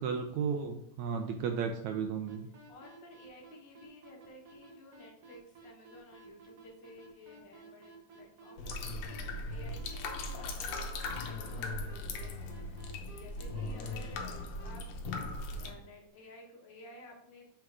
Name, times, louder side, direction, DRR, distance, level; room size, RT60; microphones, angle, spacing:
voice 1, 0.0-2.5, right 6 dB, 80° right, 5 dB, 1.7 m, -34 dB
sound 1, 2.3-14.7, right 4 dB, 55° right, 2.0 m, -55 dB
voice 2, 2.7-14.9 15.5-17.5, left 2 dB, 50° left, -1 dB, 1.4 m, -54 dB
sound 2, 8.6-15.7, left 2 dB, 65° left, 1.7 m, -39 dB
7.7 x 3.8 x 4.7 m, 0.77 s
omnidirectional pair, 3.8 m